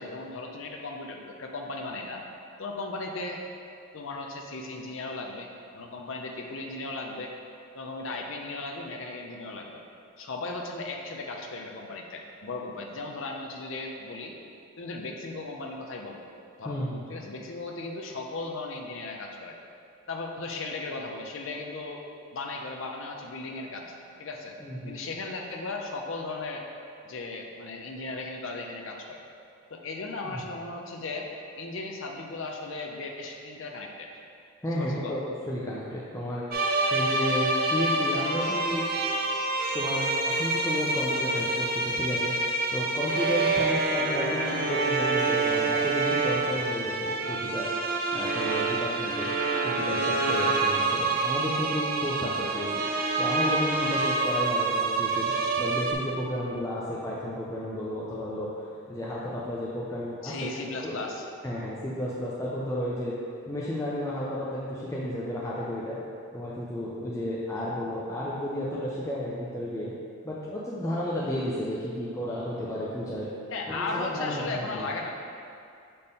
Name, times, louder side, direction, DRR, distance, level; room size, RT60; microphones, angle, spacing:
voice 1, 0.0-2.2 2.6-3.4 3.9-7.3 7.7-9.8 10.2-14.3 14.8-16.2 16.6-16.8 17.1-19.6 20.1-22.0 22.3-23.9 24.2-24.5 24.9-26.7 27.0-29.2 29.7-31.3 31.6-34.1 34.7-35.2 60.2-61.3 73.5-75.1, left 3 dB, 60° left, 1 dB, 0.6 m, -36 dB
voice 2, 16.6-17.0 24.6-25.0 30.2-30.4 34.6-36.4 36.9-38.9 39.7-42.4 42.7-47.7 48.1-49.3 49.6-52.7 53.2-60.5 60.8-61.1 61.4-63.2 63.5-66.0 66.3-69.9 70.2-73.3 73.7-74.9, left 1 dB, 15° left, -7 dB, 0.5 m, -32 dB
sound 1, 36.5-55.9, right 3 dB, 40° right, 0.5 m, -27 dB
6.5 x 4.3 x 3.6 m, 2.5 s
head